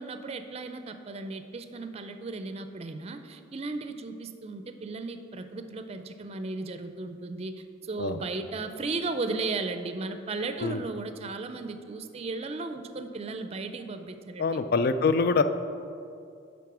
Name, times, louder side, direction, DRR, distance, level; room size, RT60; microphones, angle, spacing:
voice 1, 0.0-7.5 7.8-14.6, right 3 dB, 35° right, 8 dB, 0.4 m, -35 dB
voice 2, 14.4-15.4, left 4 dB, 55° left, 11 dB, 0.4 m, -24 dB
10.5 x 3.6 x 6.1 m, 2.5 s
head